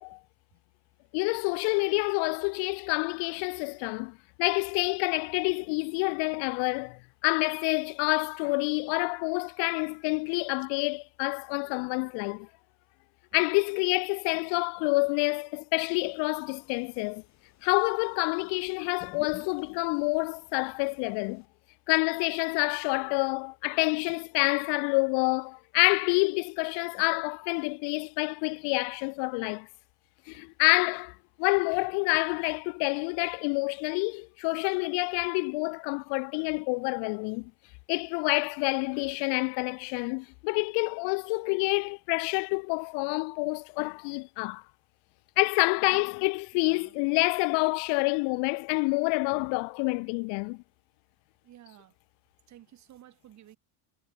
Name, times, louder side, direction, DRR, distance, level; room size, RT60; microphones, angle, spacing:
voice 1, 1.1-12.5 13.3-17.2 17.6-21.4 21.9-29.7 30.3-37.5 37.9-44.6 45.4-50.6, left 33 dB, 80° left, 1.2 m, -28 dB
sound 1, 16.0-21.5, left 13 dB, 40° left, 1.9 m, -53 dB
voice 2, 46.5-47.0 51.4-51.9 52.5-53.6, right 12 dB, 40° right, 4.9 m, -54 dB
cardioid pair, 155°, 41 cm